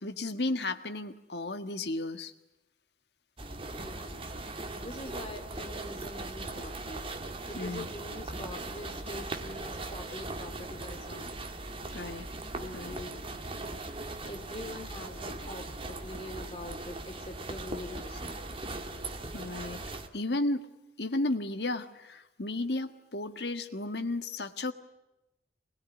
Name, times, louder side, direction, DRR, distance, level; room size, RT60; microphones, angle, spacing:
voice 1, 0.0-2.3 7.5-7.9 11.9-12.3 12.7-13.0 19.3-19.8 20.1-20.7 21.0-24.7, left 2 dB, 65° left, 9 dB, 1.7 m, -33 dB
sound 1, 3.4-20.1, right 2 dB, 30° right, 2.2 m, -39 dB
voice 2, 3.7-4.3 4.8-7.0 7.4-11.3 12.6-13.3 14.2-18.4, left 1 dB, 30° left, 5 dB, 3.7 m, -44 dB
26.5 x 21.0 x 10.0 m, 0.94 s
head